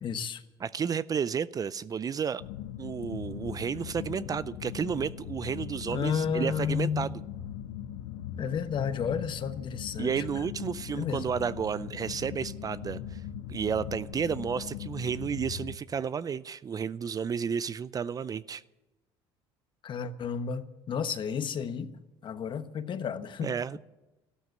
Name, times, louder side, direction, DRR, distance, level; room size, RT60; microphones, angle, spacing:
voice 1, 0.0-0.4 5.9-7.1 8.4-10.4 10.9-11.2 19.8-21.9 22.2-23.8, left 7 dB, 45° left, 1.2 m, -32 dB
voice 2, 0.6-2.4 2.8-7.1 10.0-13.2 13.5-18.6 23.4-23.8, right 7 dB, 35° right, 0.5 m, -32 dB
sound 1, 2.4-15.8, left 10 dB, 85° left, 1.0 m, -40 dB
14.0 x 12.5 x 7.9 m
supercardioid pair, 85°, 11 cm